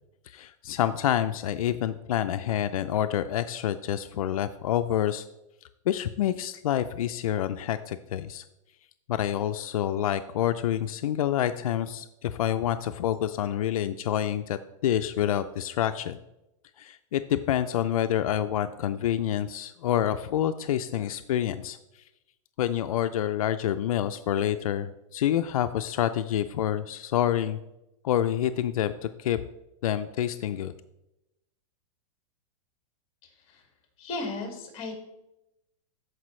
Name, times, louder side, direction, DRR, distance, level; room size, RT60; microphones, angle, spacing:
voice 1, 0.3-5.2 5.9-8.4 9.1-16.2 16.8-21.8 22.6-27.6 28.0-29.4 29.8-30.7, left 11 dB, 90° left, 10 dB, 0.4 m, -27 dB
voice 2, 34.0-35.0, left 2 dB, 30° left, 2 dB, 2.2 m, -35 dB
13.5 x 4.9 x 3.2 m, 0.90 s
supercardioid pair, 155°, 18 cm